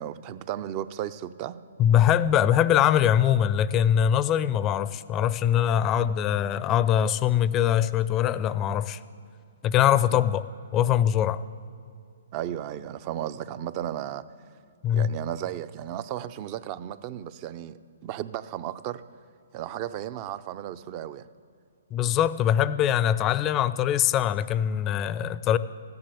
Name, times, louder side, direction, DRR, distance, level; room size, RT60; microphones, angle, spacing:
voice 1, 0.0-1.6 10.1-10.2 12.3-14.2 14.9-19.0 19.5-21.2, right 11 dB, 35° right, 14 dB, 0.5 m, -34 dB
voice 2, 1.8-9.0 9.6-10.4 10.7-11.4 14.8-15.1 21.9-25.6, left 10 dB, 25° left, 17 dB, 0.5 m, -22 dB
15.0 x 11.0 x 8.4 m, 2.4 s
hypercardioid pair, 135°, 0 cm